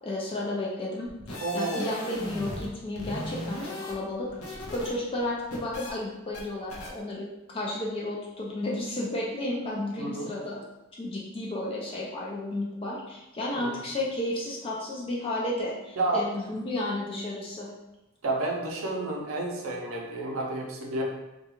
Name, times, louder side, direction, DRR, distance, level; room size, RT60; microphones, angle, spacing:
voice 1, 0.0-7.3 7.5-10.6 11.0-17.7, left 1 dB, 25° left, -4 dB, 0.4 m, -32 dB
sound 1, 1.1-2.7 3.0-4.9 5.2-5.9 6.3-6.4 6.7-6.9, left 1 dB, 85° left, 0.6 m, -37 dB
voice 2, 1.4-1.9 10.0-10.3 13.5-13.7 16.0-16.3 18.2-21.0, right 2 dB, 70° right, 0 dB, 0.5 m, -30 dB
2.4 x 2.2 x 2.9 m, 0.95 s
head